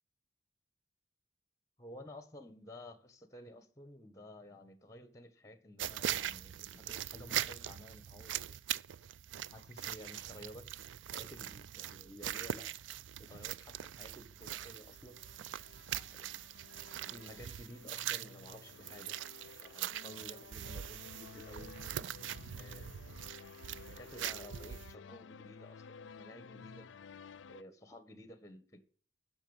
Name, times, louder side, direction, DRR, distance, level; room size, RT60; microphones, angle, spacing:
voice 1, 1.8-8.6 9.4-10.7 11.1-12.7 13.2-15.2 15.9-16.4 17.0-19.2 19.6-21.8 22.6-23.1 23.9-26.9 27.5-28.9, left 1 dB, 15° left, 1.5 m, -53 dB
sound 1, 5.8-24.9, right 11 dB, 85° right, 0.4 m, -42 dB
sound 2, 13.8-27.6, left 5 dB, 85° left, 0.5 m, -54 dB
11.5 x 6.4 x 7.1 m
head